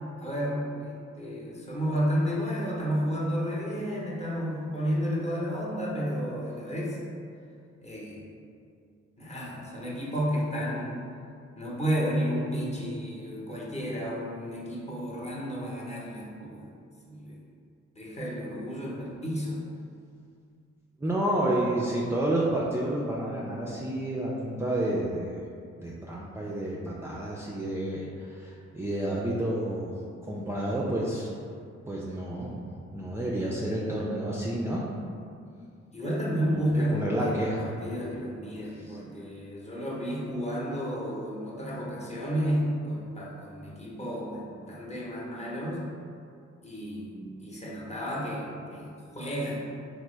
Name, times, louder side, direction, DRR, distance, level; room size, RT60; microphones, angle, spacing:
voice 1, 0.2-7.0 7.8-8.2 9.2-11.0 11.6-16.7 17.1-17.4 18.0-19.6 35.9-44.4 44.7-45.8 46.6-49.7, equal, 20° left, -5 dB, 0.8 m, -32 dB
voice 2, 21.0-25.4 25.8-29.9 30.2-31.3 31.9-32.5 32.9-34.9 36.7-37.7 38.6-39.0, right 1 dB, 10° right, -5 dB, 0.4 m, -30 dB
3.2 x 2.0 x 3.1 m, 2.3 s
cardioid pair, 50°, 30 cm